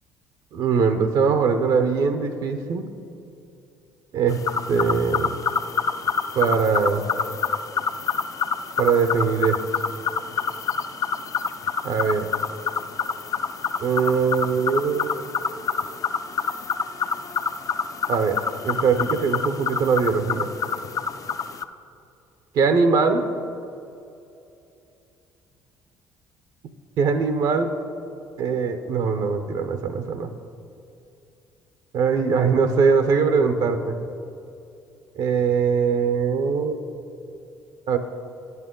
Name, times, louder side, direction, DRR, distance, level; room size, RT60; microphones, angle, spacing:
voice 1, 0.5-2.9 4.1-4.4 4.7-5.3 6.3-7.0 8.8-9.6 11.8-12.3 13.8-15.1 18.1-18.4 18.6-20.5 22.5-23.2 27.0-27.7 28.4-30.3 31.9-34.0 35.2-36.8 37.9-38.0, right 5 dB, 65° right, 8 dB, 0.7 m, -21 dB
sound 1, 4.3-21.6, left 6 dB, 45° left, 0.5 m, -27 dB
10.5 x 8.2 x 3.8 m, 2.7 s
supercardioid pair, 70°, 8 cm